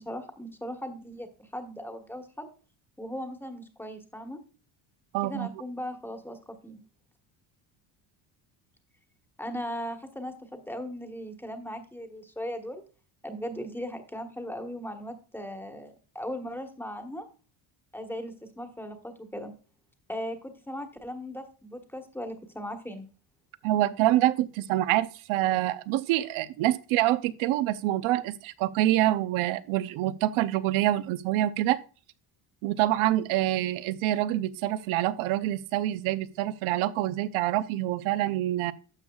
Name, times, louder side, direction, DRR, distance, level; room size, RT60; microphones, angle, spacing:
voice 1, 0.0-2.5 3.0-4.4 5.2-6.8 9.4-12.8 13.2-17.2 17.9-19.5 20.1-23.1, equal, 5° left, 6 dB, 1.3 m, -38 dB
voice 2, 5.1-5.5 23.6-31.8 32.6-38.7, right 14 dB, 80° right, 15 dB, 0.8 m, -26 dB
12.5 x 7.2 x 2.4 m, 0.36 s
cardioid pair, 140°, 48 cm